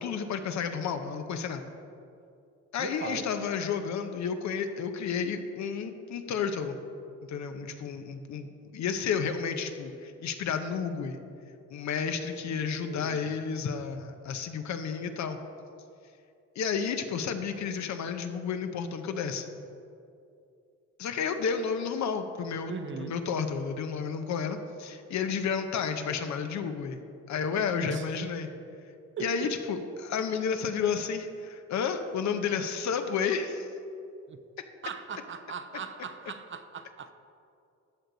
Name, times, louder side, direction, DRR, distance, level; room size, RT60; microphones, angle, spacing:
voice 1, 0.0-1.6 2.7-6.8 7.3-11.2 11.7-15.4 16.6-19.5 21.0-28.5 29.2-33.7, left 6 dB, 65° left, 7 dB, 0.8 m, -31 dB
voice 2, 2.8-3.3 12.5-13.3 22.7-23.1 27.8-28.0 29.2-29.3 34.3-34.4 34.8-37.1, right 6 dB, 40° right, 9 dB, 0.6 m, -39 dB
13.0 x 6.6 x 4.0 m, 2.6 s
cardioid pair, 90°, 30 cm